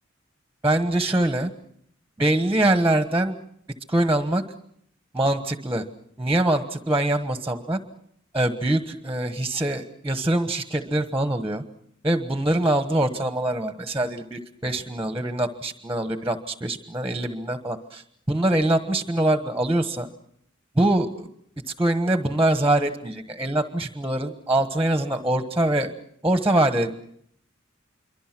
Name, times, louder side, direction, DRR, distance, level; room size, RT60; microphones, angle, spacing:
voice 1, 0.6-1.5 2.2-3.4 3.9-4.4 5.1-5.8 6.2-7.8 8.3-11.6 12.0-20.1 20.7-21.3 21.8-25.9 26.2-26.9, right 1 dB, 15° right, 8 dB, 1.3 m, -23 dB
27.0 x 24.0 x 6.1 m, 0.70 s
head